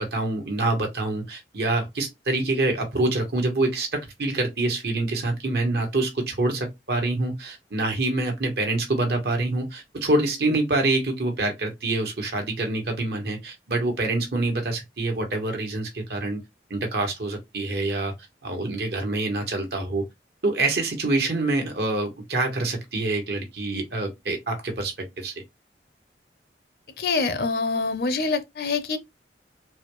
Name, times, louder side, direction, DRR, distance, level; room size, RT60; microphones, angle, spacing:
voice 1, 0.0-16.4 16.7-18.1 18.4-20.0 20.4-25.3, right 2 dB, 65° right, 1.2 m, -26 dB
voice 2, 27.0-29.0, left 4 dB, 55° left, 0.6 m, -25 dB
4.2 x 2.3 x 3.0 m
head